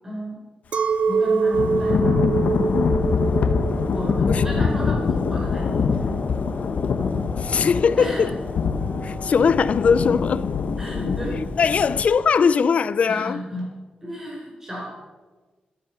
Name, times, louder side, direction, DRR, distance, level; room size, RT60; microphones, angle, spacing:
voice 1, 0.0-0.4 1.1-2.9 3.9-6.4 8.0-8.4 10.8-11.4 13.1-13.6 14.0-15.0, equal, 15° right, 4.9 m, -33 dB
Chink clink, 0.7-6.2, right 5 dB, 50° right, 0.5 m, -25 dB
Thunder / Rain, 1.5-12.1, left 5 dB, 70° left, 1.0 m, -24 dB
sound 1, 3.1-9.3, left 1 dB, 15° left, 2.3 m, -37 dB
voice 2, 7.4-8.3 9.0-10.6 11.6-13.4, left 6 dB, 55° left, 0.5 m, -20 dB
14.0 x 12.5 x 6.0 m
wide cardioid pair, 170°, 3 cm